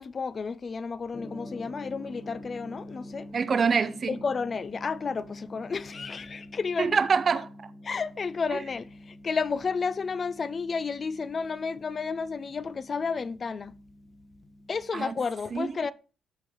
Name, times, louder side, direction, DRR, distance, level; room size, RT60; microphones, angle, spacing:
voice 1, 0.0-3.3 4.1-7.0 7.8-13.7 14.7-15.9, left 5 dB, 45° left, 0.4 m, -32 dB
Gong, 1.1-14.9, left 1 dB, 25° left, 1.2 m, -46 dB
voice 2, 3.3-4.2 6.8-7.7 14.9-15.1 15.5-15.7, right 5 dB, 45° right, 0.5 m, -25 dB
12.5 x 4.4 x 3.0 m
cardioid pair, 75°, 0 cm